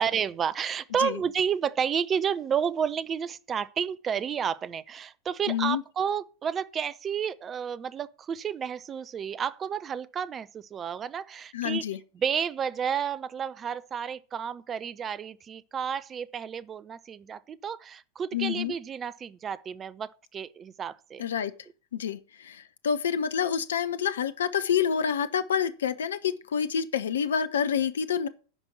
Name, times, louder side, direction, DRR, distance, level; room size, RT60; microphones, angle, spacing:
voice 1, 0.0-11.8 12.1-21.2, right 7 dB, 25° right, 0.6 m, -31 dB
voice 2, 5.5-5.8 11.5-12.0 18.3-18.7 21.2-21.5 21.9-28.3, left 8 dB, 65° left, 0.7 m, -28 dB
10.0 x 5.3 x 7.5 m
figure-of-eight pair, 90°, 0 cm